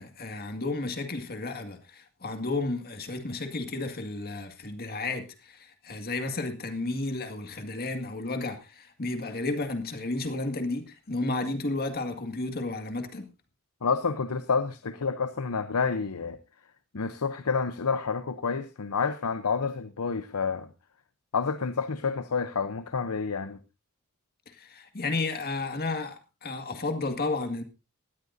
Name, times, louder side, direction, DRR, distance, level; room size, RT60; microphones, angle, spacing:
voice 1, 0.0-13.3 16.9-17.0 24.5-27.6, left 2 dB, 45° left, 2.0 m, -32 dB
voice 2, 13.8-16.4 16.9-20.7 21.3-23.6, left 5 dB, 85° left, 0.8 m, -29 dB
19.0 x 13.5 x 2.7 m
head